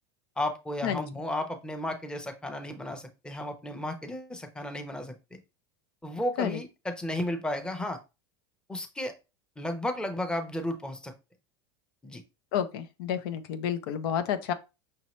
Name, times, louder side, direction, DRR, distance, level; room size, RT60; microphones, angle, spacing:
voice 1, 0.4-5.4 6.0-8.0 8.7-9.1 9.6-11.1 12.0-12.2, left 1 dB, 5° left, 0.8 m, -33 dB
voice 2, 12.5-14.5, left 9 dB, 70° left, 0.7 m, -30 dB
5.6 x 2.8 x 3.1 m
supercardioid pair, 115°, 13 cm